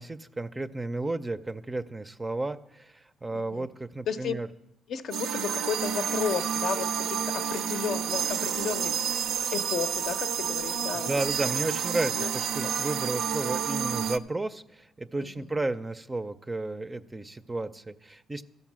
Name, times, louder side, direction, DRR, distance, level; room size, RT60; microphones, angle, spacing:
voice 1, 0.0-4.5 11.1-18.4, right 2 dB, 20° right, 10 dB, 0.4 m, -33 dB
voice 2, 3.3-3.7 4.1-4.3 4.9-9.0 9.5-11.1 12.1-12.3 12.6-12.7 15.2-15.5, left 7 dB, 65° left, 10 dB, 0.6 m, -33 dB
sound 1, 5.1-14.2, right 8 dB, 80° right, 0.4 m, -30 dB
13.5 x 5.4 x 7.4 m, 0.91 s
cardioid pair, 90°, 0 cm